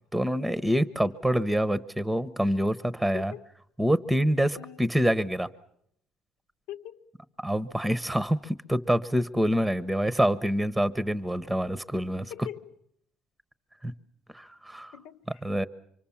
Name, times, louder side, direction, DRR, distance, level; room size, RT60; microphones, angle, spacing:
voice 1, 0.1-3.3 3.8-5.5 7.4-12.3 13.8-13.9 14.3-14.9 15.4-15.7, equal, 5° right, 0.9 m, -26 dB
voice 2, 3.1-3.5 4.5-4.9 6.7-7.1 12.3-12.7 14.9-15.4, left 11 dB, 85° left, 1.0 m, -42 dB
25.5 x 24.0 x 7.2 m
cardioid pair, 105°, 0 cm